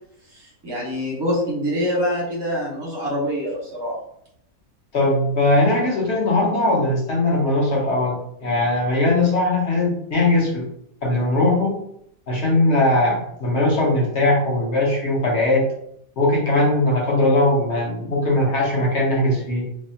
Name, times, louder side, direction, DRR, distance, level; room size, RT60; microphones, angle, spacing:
voice 1, 0.3-3.9, equal, 20° right, -5 dB, 0.7 m, -25 dB
voice 2, 4.9-10.7 11.0-11.8 12.3-15.7 16.2-19.7, left 2 dB, 50° left, -2 dB, 0.9 m, -20 dB
3.4 x 2.1 x 2.6 m, 0.71 s
omnidirectional pair, 1.7 m